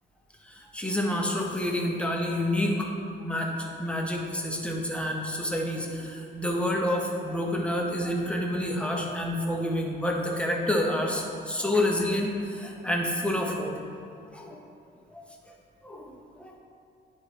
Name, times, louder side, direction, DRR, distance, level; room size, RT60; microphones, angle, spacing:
voice 1, 0.4-2.9 3.2-13.7 14.3-14.6 15.1-15.2 15.8-16.6, left 1 dB, 5° left, 0 dB, 1.1 m, -28 dB
10.0 x 4.7 x 3.3 m, 2.4 s
cardioid pair, 90°, 20 cm